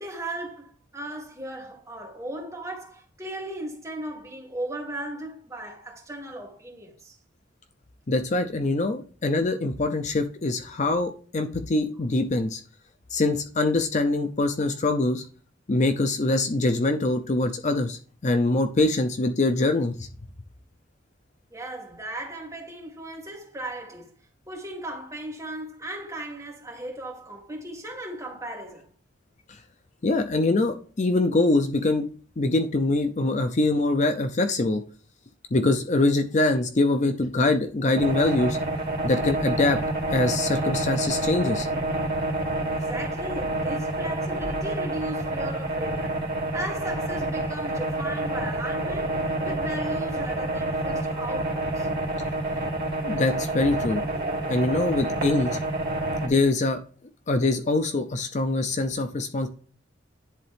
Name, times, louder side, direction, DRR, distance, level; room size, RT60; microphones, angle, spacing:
voice 1, 0.0-7.2 21.5-24.1 24.5-28.9 42.7-51.9, right 1 dB, 15° right, 2.1 m, -36 dB
voice 2, 8.1-12.6 13.1-15.2 15.7-20.1 29.5-29.6 30.0-32.1 32.4-34.8 35.5-38.6 39.0-39.8 40.1-41.7 53.0-54.0 54.5-55.6 56.2-56.8 57.3-59.5, left 2 dB, 40° left, 0.6 m, -24 dB
sound 1, 38.0-56.3, right 2 dB, 55° right, 2.4 m, -28 dB
10.5 x 3.8 x 3.4 m
head